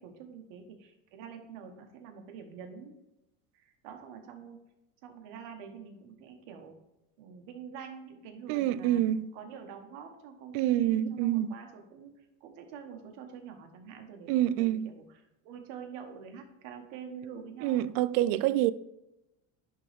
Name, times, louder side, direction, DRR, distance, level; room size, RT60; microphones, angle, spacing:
voice 1, 0.0-3.0 3.5-4.6 5.0-6.8 7.2-9.0 9.3-17.9 18.2-18.5, right 6 dB, 75° right, 1.5 m, -46 dB
voice 2, 8.5-9.3 10.5-11.6 14.3-14.9 17.6-18.7, right 13 dB, 60° right, 0.5 m, -27 dB
10.5 x 3.9 x 3.5 m
cardioid pair, 140°, 38 cm